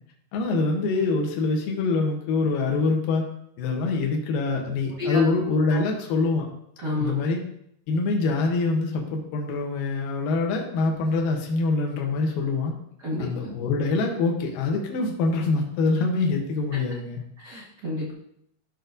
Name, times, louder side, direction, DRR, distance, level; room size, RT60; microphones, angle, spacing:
voice 1, 0.3-3.3 3.6-6.5 7.0-7.4 7.9-12.7 13.2-17.2, left 3 dB, 70° left, 1 dB, 2.5 m, -24 dB
voice 2, 6.8-7.1 13.0-13.5 17.4-18.1, left 1 dB, 45° right, -7 dB, 1.3 m, -30 dB
13.5 x 6.0 x 2.7 m, 0.73 s
omnidirectional pair, 4.7 m